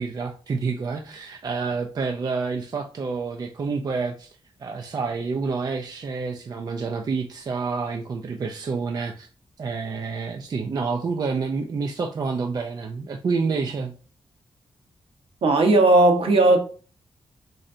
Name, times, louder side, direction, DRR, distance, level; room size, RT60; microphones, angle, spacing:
voice 1, 0.0-4.3 4.6-9.3 9.6-13.9, right 4 dB, 40° right, 0.4 m, -28 dB
voice 2, 15.4-16.6, right 2 dB, 65° right, 0.8 m, -16 dB
3.8 x 3.2 x 2.6 m
wide cardioid pair, 120°, 10 cm